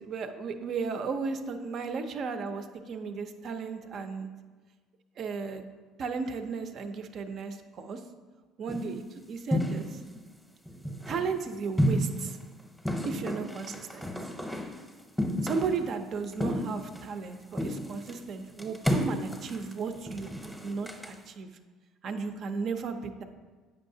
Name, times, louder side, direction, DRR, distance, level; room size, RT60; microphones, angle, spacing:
voice 1, 0.0-4.3 5.2-5.6 6.0-8.0 8.6-10.0 11.0-12.4 13.0-14.1 15.4-21.5 22.0-23.2, right 5 dB, 50° right, 8 dB, 0.6 m, -35 dB
sound 1, 8.7-9.0 9.5-10.2 10.7-11.3 11.8-12.4 12.8-14.8 15.2-15.9 16.3-17.3 17.5-18.2 18.6-21.1, equal, ahead, 0.8 m, -31 dB
8.5 x 5.5 x 2.7 m, 1.4 s
supercardioid pair, 90°, 0 cm